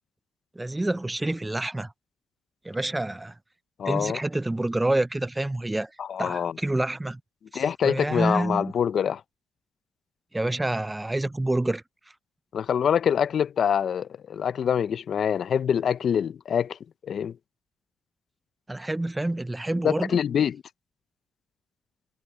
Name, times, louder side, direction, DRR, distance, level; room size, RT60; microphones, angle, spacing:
voice 1, 0.6-1.9 2.6-3.3 3.8-5.9 6.2-7.2 7.5-8.7 10.3-11.8 18.7-20.2, right 2 dB, 10° right, 0.5 m, -28 dB
voice 2, 3.8-4.2 6.0-6.5 7.5-9.2 12.5-16.8 17.0-17.4 19.8-20.6, left 8 dB, 55° left, 0.5 m, -25 dB
cardioid pair, 90°, 0 cm